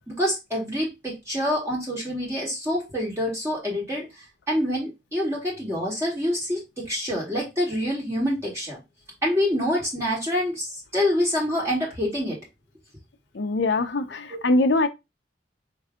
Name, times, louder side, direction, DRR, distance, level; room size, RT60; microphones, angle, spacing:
voice 1, 0.1-4.1 4.5-8.8 9.2-12.4 14.3-14.4, left 1 dB, 15° right, 1.3 m, -26 dB
voice 2, 13.4-14.9, left 2 dB, 85° left, 0.7 m, -22 dB
4.7 x 2.7 x 3.6 m
head